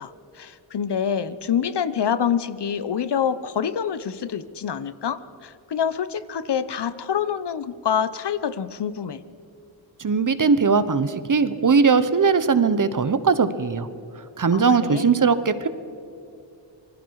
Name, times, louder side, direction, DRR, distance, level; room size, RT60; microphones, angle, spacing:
voice 1, 0.0-9.2 14.5-15.2, left 8 dB, 60° left, 15 dB, 0.9 m, -26 dB
voice 2, 10.0-13.9 14.4-15.7, right 5 dB, 40° right, 13 dB, 1.2 m, -19 dB
27.0 x 20.0 x 4.8 m, 2.6 s
cardioid pair, 70°, 46 cm